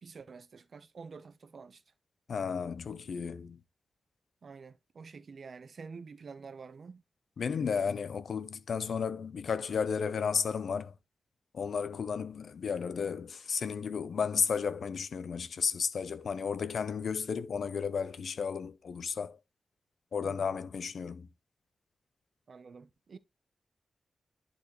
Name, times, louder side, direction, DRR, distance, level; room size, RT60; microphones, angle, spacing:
voice 1, 0.0-1.8 4.4-7.0 20.2-20.6 22.5-23.2, right 5 dB, 60° right, 0.8 m, -48 dB
voice 2, 2.3-3.6 7.4-10.9 11.5-19.4 20.1-21.3, left 6 dB, 75° left, 0.6 m, -33 dB
11.0 x 4.2 x 3.1 m
wide cardioid pair, 135°, 0 cm